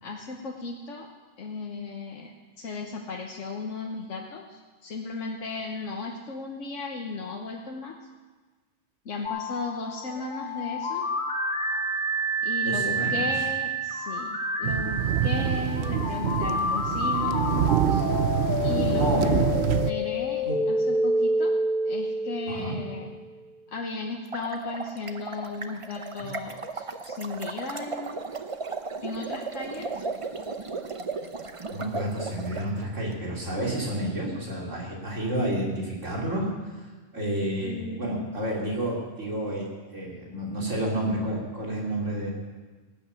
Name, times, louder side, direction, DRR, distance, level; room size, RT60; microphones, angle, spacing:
voice 1, 0.0-1.1 1.4-7.9 9.0-11.1 12.4-18.1 18.6-19.4 19.9-21.6 21.8-23.1 23.7-28.1 29.0-30.0 37.6-38.5, left 3 dB, 85° left, 1 dB, 1.4 m, -35 dB
sound 1, 9.2-23.1, equal, 45° left, 1.9 m, -28 dB
voice 2, 12.6-13.3 18.9-19.3 20.5-20.6 22.5-22.8 26.2-26.3 31.7-36.7 37.1-39.7 39.9-42.3, right 1 dB, 85° right, -3 dB, 3.7 m, -30 dB
sound 2, 14.6-19.9, right 9 dB, 65° right, 0.8 m, -26 dB
sound 3, 24.2-32.7, right 4 dB, 30° right, 0.7 m, -35 dB
18.5 x 8.9 x 7.0 m, 1.3 s
omnidirectional pair, 1.2 m